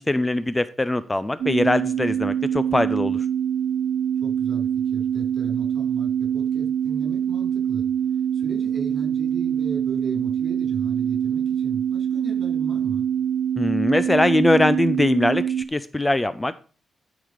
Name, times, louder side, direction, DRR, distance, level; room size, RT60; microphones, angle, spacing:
voice 1, 0.0-3.2 13.6-16.5, left 1 dB, 15° left, 14 dB, 0.5 m, -21 dB
sound 1, 1.4-15.7, right 9 dB, 80° right, 0.6 m, -24 dB
voice 2, 4.2-7.8 8.3-13.1, right 4 dB, 50° right, 2 dB, 5.9 m, -36 dB
12.5 x 4.8 x 5.1 m, 0.38 s
cardioid pair, 120°, 0 cm